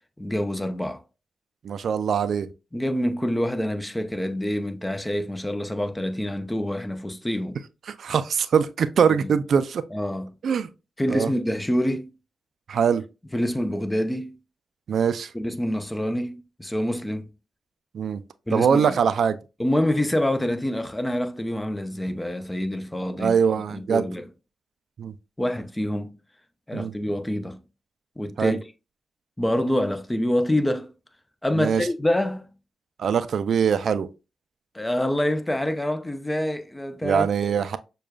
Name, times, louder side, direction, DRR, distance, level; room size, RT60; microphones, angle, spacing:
voice 1, 0.2-1.0 2.7-7.6 9.2-9.3 9.9-10.4 11.0-12.1 13.3-14.4 15.3-17.3 18.5-19.0 19.6-23.4 23.7-24.3 25.4-26.2 26.7-27.6 28.2-28.6 29.4-30.9 31.4-32.5 34.7-37.6, left 1 dB, 15° left, 0.6 m, -26 dB
voice 2, 1.6-2.5 7.9-9.8 10.4-10.7 11.1-11.3 12.7-13.0 14.9-15.3 17.9-18.2 18.5-19.4 23.2-24.1 25.0-25.1 26.7-26.9 28.4-28.6 31.6-31.8 33.0-34.1 37.0-37.8, right 7 dB, 70° right, 0.3 m, -22 dB
6.3 x 2.3 x 2.3 m
cardioid pair, 55°, 0 cm